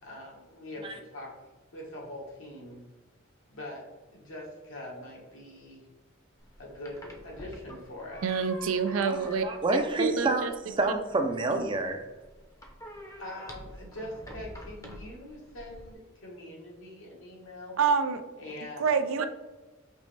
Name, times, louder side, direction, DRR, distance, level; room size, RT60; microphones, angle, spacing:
voice 1, 0.0-1.3 1.7-2.8 3.5-5.9 6.6-8.2 13.2-17.8 18.4-19.0, left 1 dB, 85° left, -3 dB, 1.5 m, -43 dB
sound 1, 6.4-15.9, equal, 15° left, 0.6 m, -48 dB
voice 2, 8.2-9.5 10.0-10.5 17.8-18.2 18.8-19.3, right 5 dB, 90° right, 9 dB, 0.4 m, -27 dB
voice 3, 9.4-10.4 10.8-12.0, right 2 dB, 25° right, 5 dB, 0.4 m, -28 dB
5.2 x 3.1 x 3.3 m, 1.2 s
head